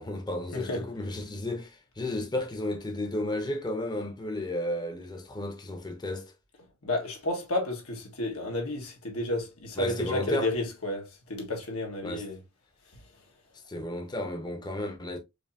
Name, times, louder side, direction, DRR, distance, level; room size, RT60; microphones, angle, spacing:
voice 1, 0.0-6.3 9.8-10.5 12.0-12.3 13.7-15.2, left 1 dB, 20° left, 0.6 m, -33 dB
voice 2, 0.5-0.8 6.8-12.4 12.9-13.0 13.8-13.9, left 1 dB, 90° left, 1.4 m, -31 dB
5.0 x 2.7 x 2.6 m
head